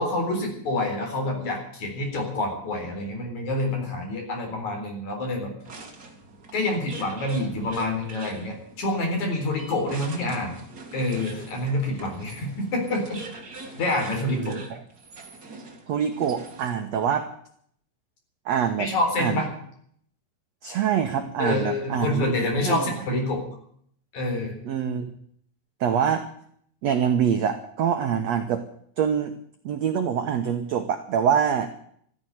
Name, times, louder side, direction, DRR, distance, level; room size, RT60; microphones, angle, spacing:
voice 1, 0.0-5.5 6.5-10.5 10.9-13.2 13.8-14.6 18.8-19.5 21.4-23.4 24.1-24.5, left 2 dB, 50° left, 2 dB, 5.3 m, -27 dB
sound 1, 5.6-16.9, right 2 dB, 30° right, 2.1 m, -42 dB
voice 2, 14.3-14.8 15.9-17.3 18.4-18.9 19.2-19.4 20.6-22.9 24.6-25.1 25.8-26.2 26.8-28.7 29.0-29.3 29.6-31.7, right 8 dB, 70° right, 6 dB, 1.6 m, -25 dB
14.0 x 10.5 x 9.2 m, 0.65 s
omnidirectional pair, 4.4 m